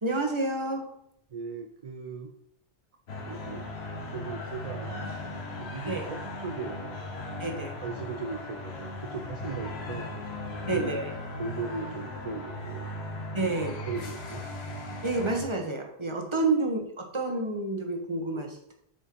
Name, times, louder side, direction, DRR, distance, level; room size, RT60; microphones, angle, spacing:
voice 1, 0.0-0.9 5.9-6.1 7.4-7.7 10.7-11.1 13.3-13.8 15.0-18.6, right 2 dB, 30° right, 2 dB, 1.2 m, -29 dB
voice 2, 1.3-2.3 3.2-3.7 4.1-5.0 5.6-7.0 7.8-10.1 10.7-10.8 11.4-12.9 13.4-13.5 13.9-14.4, right 5 dB, 45° right, 4 dB, 0.5 m, -38 dB
sound 1, 3.1-15.4, left 2 dB, 85° left, 1.5 m, -37 dB
8.5 x 4.5 x 4.6 m, 0.71 s
omnidirectional pair, 1.0 m